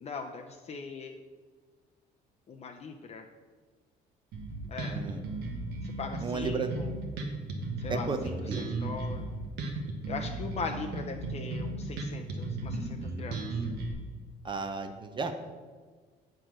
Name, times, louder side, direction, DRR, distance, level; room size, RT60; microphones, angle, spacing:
voice 1, 0.0-1.2 2.5-3.2 4.7-5.0 5.8-6.9 7.8-9.3 10.0-13.6, left 4 dB, 40° left, 3 dB, 0.6 m, -40 dB
Bass guitar, 4.3-13.9, right 2 dB, 80° right, 1.2 m, -35 dB
voice 2, 4.9-5.2 6.2-6.7 7.9-8.7 14.4-15.3, right 4 dB, 30° right, 7 dB, 0.6 m, -34 dB
7.8 x 4.5 x 6.1 m, 1.5 s
cardioid pair, 110°, 17 cm